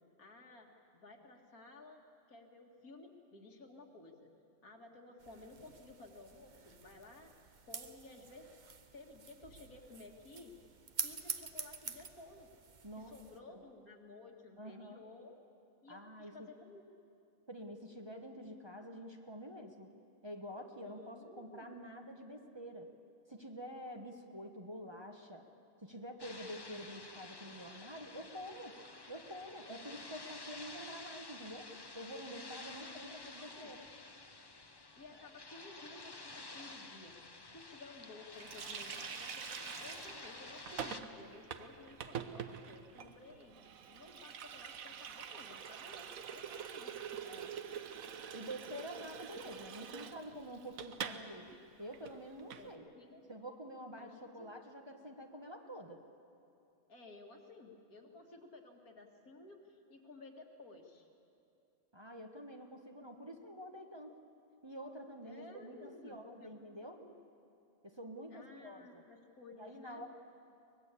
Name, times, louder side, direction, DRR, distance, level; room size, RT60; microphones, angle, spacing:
voice 1, 0.2-2.0 2.3-4.3 4.6-7.3 7.7-8.5 8.9-10.6 11.0-12.5 12.9-15.4 15.8-16.8 20.8-21.7 33.0-33.7 35.0-37.1 37.5-39.5 39.8-43.6 43.9-47.2 52.6-53.3 54.0-54.5 56.9-61.1 65.2-67.2 68.3-70.0, left 2 dB, 90° left, 1 dB, 2.6 m, -55 dB
sound 1, 5.2-13.4, right 5 dB, 40° right, 0.9 m, -47 dB
voice 2, 12.8-13.1 13.5-13.6 14.6-15.0 15.9-16.5 17.5-19.9 20.2-22.9 23.3-25.4 25.8-28.8 29.1-31.7 31.9-33.9 47.2-47.5 48.3-51.5 51.8-52.9 53.3-56.0 61.9-64.2 64.6-67.0 67.8-69.0 69.6-70.1, equal, 20° right, 2 dB, 1.3 m, -48 dB
sound 2, 26.2-41.0, left 3 dB, 20° left, 0.8 m, -51 dB
Water tap faucet, 38.4-51.2 51.5-51.6 51.9-52.7, right 7 dB, 75° right, 1.3 m, -46 dB
24.0 x 20.0 x 8.3 m, 2.7 s
omnidirectional pair, 1.5 m